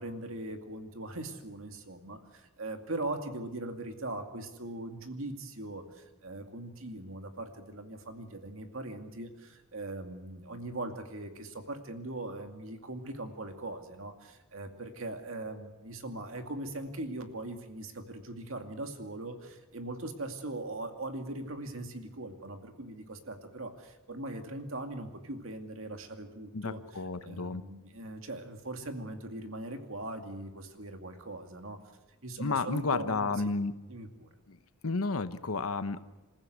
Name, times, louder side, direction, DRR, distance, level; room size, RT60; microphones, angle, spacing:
voice 1, 0.0-26.8 27.2-31.8 32.2-33.3 33.9-34.3, right 2 dB, 65° right, 5 dB, 2.4 m, -40 dB
voice 2, 26.5-27.6 32.4-33.7 34.5-34.6 34.8-36.0, left 3 dB, 80° left, 12 dB, 1.0 m, -32 dB
27.5 x 15.0 x 8.0 m, 1.2 s
head